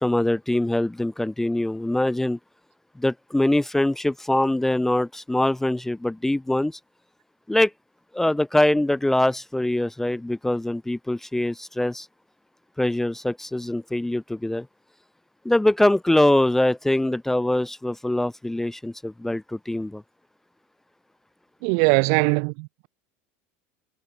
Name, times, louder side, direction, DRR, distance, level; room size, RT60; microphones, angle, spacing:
voice 1, 0.0-2.4 3.0-6.8 7.5-7.7 8.1-12.1 12.8-14.7 15.4-20.0, left 1 dB, 5° left, 0.4 m, -23 dB
voice 2, 21.6-22.9, right 40 dB or more, 65° right, 0.7 m, -21 dB
supercardioid pair, 110°, 6 cm